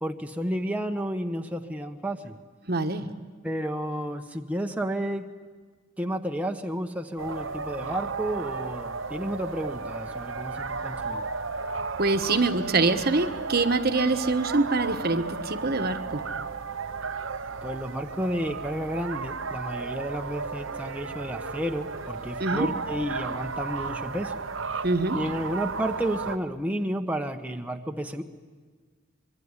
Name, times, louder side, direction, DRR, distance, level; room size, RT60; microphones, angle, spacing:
voice 1, 0.0-2.4 3.4-5.3 6.0-11.3 17.6-24.4 25.1-28.2, equal, 10° right, 4 dB, 1.0 m, -31 dB
voice 2, 2.7-3.1 12.0-16.2 22.4-22.7 24.8-25.2, right 3 dB, 50° right, 8 dB, 1.3 m, -25 dB
sound 1, 7.2-26.4, right 4 dB, 85° right, 1.1 m, -34 dB
25.5 x 22.5 x 9.7 m, 1.5 s
head